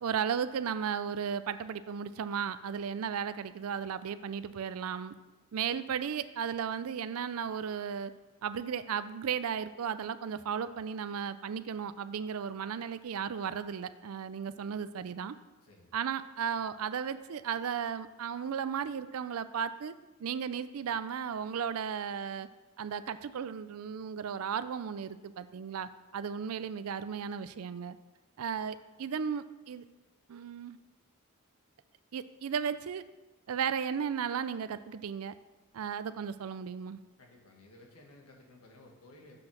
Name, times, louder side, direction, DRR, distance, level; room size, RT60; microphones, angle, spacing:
voice 1, 0.0-5.1 5.5-8.1 8.4-15.4 15.9-19.9 20.2-22.5 22.8-28.0 28.4-29.8 30.3-30.8 32.1-33.0 33.5-35.3 35.7-37.0, right 7 dB, 80° right, 13 dB, 0.4 m, -35 dB
voice 2, 15.6-15.9 37.2-39.4, left 2 dB, 85° left, 1 dB, 1.7 m, -56 dB
7.7 x 6.1 x 6.3 m, 1.1 s
head